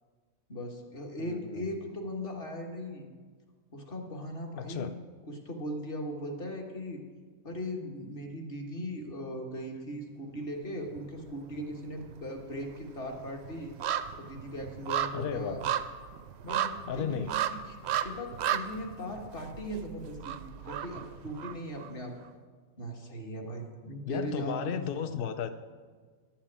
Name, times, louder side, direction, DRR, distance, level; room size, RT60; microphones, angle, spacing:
voice 1, 0.5-3.1 3.7-4.9 5.3-7.0 7.4-13.7 14.2-15.6 16.4-17.7 18.0-22.2 22.8-25.1, equal, 40° left, 1 dB, 1.7 m, -39 dB
voice 2, 1.2-1.7 4.6-5.0 15.1-15.6 16.9-17.3 24.1-25.5, left 7 dB, 75° left, 9 dB, 0.5 m, -34 dB
sound 1, 10.9-11.6 11.9-21.9 22.2-22.3, right 10 dB, 65° right, 0.6 m, -35 dB
11.5 x 5.7 x 8.6 m, 1.5 s
omnidirectional pair, 1.6 m